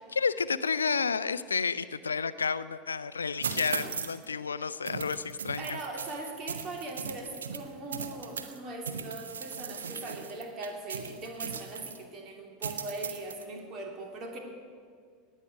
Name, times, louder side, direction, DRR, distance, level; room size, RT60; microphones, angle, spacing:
voice 1, 0.1-5.8, left 5 dB, 80° left, 16 dB, 0.4 m, -31 dB
sound 1, 3.4-4.3 4.9-8.6 8.9-12.0 12.6-13.4, right 6 dB, 75° right, 0.9 m, -38 dB
voice 2, 5.6-14.4, right 2 dB, 40° right, 2 dB, 2.8 m, -40 dB
18.5 x 6.5 x 9.4 m, 2.1 s
figure-of-eight pair, 80°, 0 cm